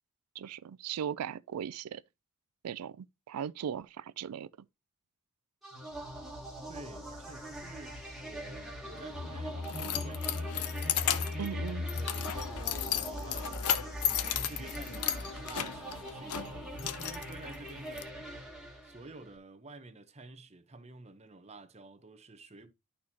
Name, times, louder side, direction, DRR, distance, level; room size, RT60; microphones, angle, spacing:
voice 1, 0.4-2.0 2.6-4.5 11.4-11.9, right 8 dB, 90° right, 0.4 m, -38 dB
sound 1, 5.6-19.3, left 1 dB, ahead, 1.6 m, -40 dB
voice 2, 6.7-13.7 14.3-18.2 18.8-22.7, right 2 dB, 30° right, 0.8 m, -50 dB
Keys jangling, 9.0-18.0, left 10 dB, 85° left, 0.7 m, -35 dB
11.5 x 4.3 x 2.9 m
head